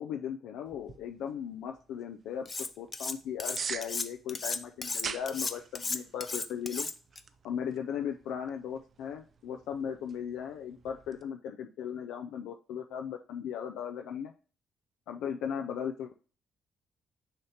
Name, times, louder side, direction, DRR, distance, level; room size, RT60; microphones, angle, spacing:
voice 1, 0.0-2.5 2.8-6.9 7.4-14.3 15.1-16.1, left 8 dB, 85° left, 4 dB, 0.4 m, -37 dB
sound 1, 0.7-11.2, right 6 dB, 40° right, 0.4 m, -46 dB
Cutlery silverware, 2.5-3.1 3.4-7.2, left 3 dB, 20° left, 0.4 m, -34 dB
6.4 x 2.9 x 5.6 m, 0.38 s
cardioid pair, 140°, 0 cm